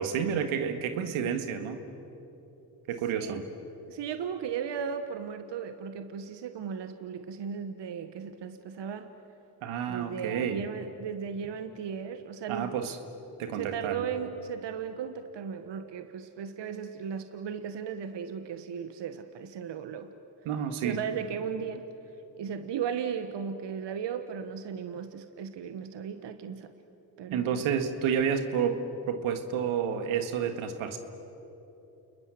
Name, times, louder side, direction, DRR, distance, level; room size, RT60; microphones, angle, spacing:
voice 1, 0.0-1.8 2.9-3.4 9.6-10.6 12.5-13.0 13.4-14.1 20.5-21.0 27.3-31.0, right 7 dB, 80° right, 8 dB, 1.9 m, -30 dB
voice 2, 3.1-3.5 3.9-9.1 9.9-12.8 13.5-20.1 20.8-21.9 22.3-26.7 27.2-27.6, right 7 dB, 60° right, 9 dB, 1.4 m, -36 dB
29.5 x 21.0 x 7.8 m, 2.9 s
supercardioid pair, 55°, 48 cm